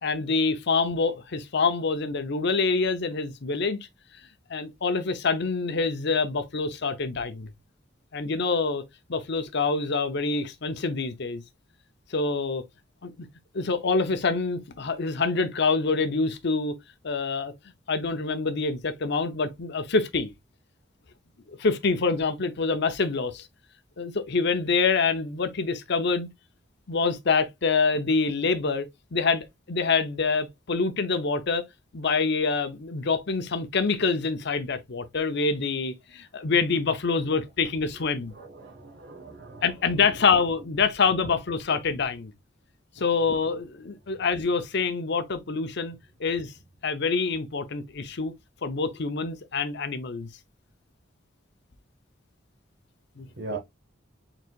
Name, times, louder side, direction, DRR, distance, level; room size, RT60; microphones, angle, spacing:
voice 1, 0.0-3.8 4.5-7.5 8.1-8.8 9.1-11.4 12.1-12.6 13.0-13.3 13.5-16.7 17.0-17.5 17.9-20.3 21.5-23.5 24.0-26.3 26.9-31.7 31.9-38.3 39.6-42.3 43.0-46.5 46.8-48.3 48.6-50.3 53.2-53.6, left 4 dB, 60° left, 0.7 m, -26 dB
voice 2, 38.3-40.1 43.0-43.1 53.4-53.6, right 3 dB, 60° right, 1.3 m, -40 dB
4.6 x 3.9 x 2.4 m
head